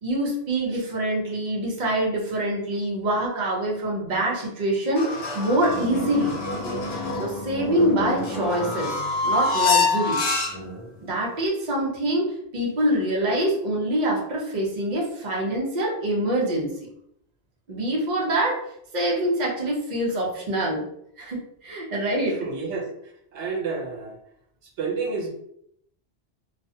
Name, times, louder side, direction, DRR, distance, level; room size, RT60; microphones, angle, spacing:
voice 1, 0.0-6.3 7.2-8.9 9.2-10.2 11.0-16.7 17.7-18.6 18.9-20.8 21.2-22.4, right 1 dB, 45° right, -3 dB, 0.8 m, -25 dB
sound 1, 5.0-10.8, left 3 dB, 70° left, 0.9 m, -26 dB
voice 2, 22.3-22.9 23.3-24.2 24.8-25.3, right 4 dB, 90° right, 1 dB, 0.9 m, -29 dB
2.4 x 2.2 x 2.7 m, 0.71 s
omnidirectional pair, 1.1 m